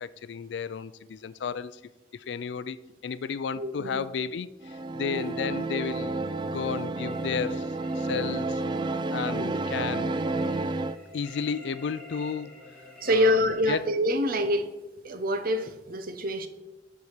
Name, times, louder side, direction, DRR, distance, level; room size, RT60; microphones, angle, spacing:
voice 1, 0.0-1.8 2.1-6.2 6.5-8.6 9.1-10.1 11.1-12.6 13.1-13.9, left 6 dB, 70° left, 0.4 m, -33 dB
voice 2, 3.6-4.1 5.1-5.3 9.4-9.6 13.0-14.7 15.0-16.5, equal, 50° right, 0.8 m, -26 dB
sound 1, 4.6-11.0, right 2 dB, 25° right, 0.3 m, -30 dB
sound 2, 7.0-13.8, left 1 dB, 5° left, 1.9 m, -49 dB
6.9 x 4.8 x 6.6 m
head